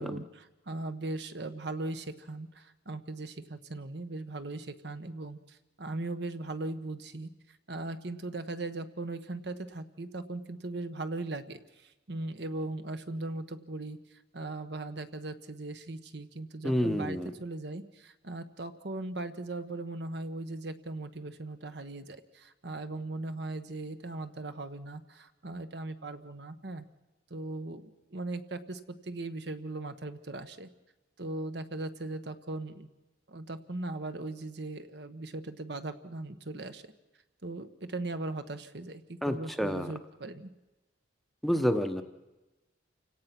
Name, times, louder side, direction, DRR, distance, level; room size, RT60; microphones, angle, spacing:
voice 1, 0.0-7.3 7.7-14.0 14.3-26.8 27.3-30.7 31.2-32.9 33.3-36.8 37.4-40.5, right 2 dB, 60° right, 10 dB, 1.2 m, -39 dB
voice 2, 16.6-17.3 39.2-39.9 41.4-42.0, equal, ahead, 7 dB, 0.9 m, -29 dB
29.0 x 17.5 x 6.0 m, 1.1 s
head